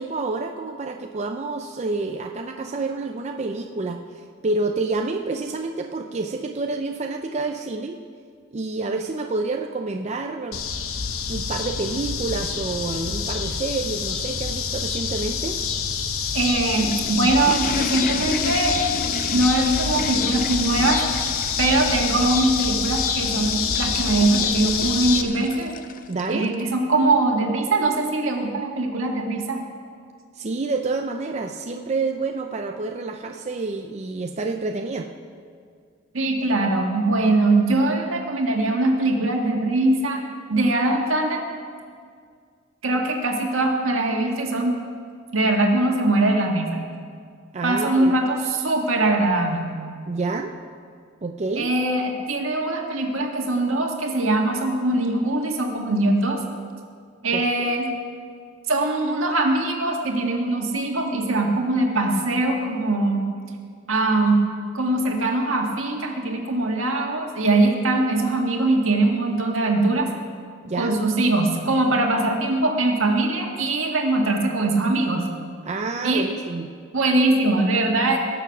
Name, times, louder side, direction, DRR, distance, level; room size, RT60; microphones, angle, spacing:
voice 1, 0.0-8.0 8.5-10.6 11.3-15.6 26.1-26.5 30.4-35.1 47.5-48.1 50.1-50.5 51.2-51.7 57.3-57.7 70.6-71.0 75.6-76.7, right 3 dB, 35° right, 3 dB, 0.5 m, -28 dB
sound 1, 10.5-25.2, left 6 dB, 85° left, 0.9 m, -26 dB
voice 2, 16.3-18.8 19.3-21.0 21.6-25.7 26.3-29.6 36.1-40.2 40.5-41.4 42.8-44.8 45.3-46.8 47.6-49.7 51.6-56.4 57.2-57.9 58.7-63.3 63.9-64.4 64.7-70.1 70.8-75.3 76.0-76.3 76.9-78.2, right 2 dB, 75° right, 1 dB, 1.8 m, -22 dB
sound 2, 16.6-26.7, left 5 dB, 40° left, 0.5 m, -34 dB
20.0 x 7.1 x 5.9 m, 2.1 s
head